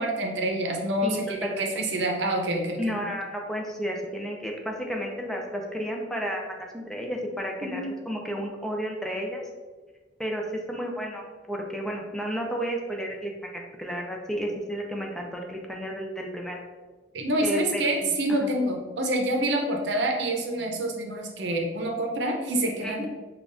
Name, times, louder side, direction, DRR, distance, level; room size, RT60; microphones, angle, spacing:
voice 1, 0.0-2.9 7.6-7.9 17.1-23.1, right 1 dB, 80° right, 1 dB, 0.6 m, -27 dB
voice 2, 1.0-1.7 2.8-9.4 10.2-16.6 17.4-18.5 22.8-23.1, equal, 5° left, 0 dB, 0.4 m, -32 dB
5.3 x 2.3 x 2.5 m, 1.3 s
head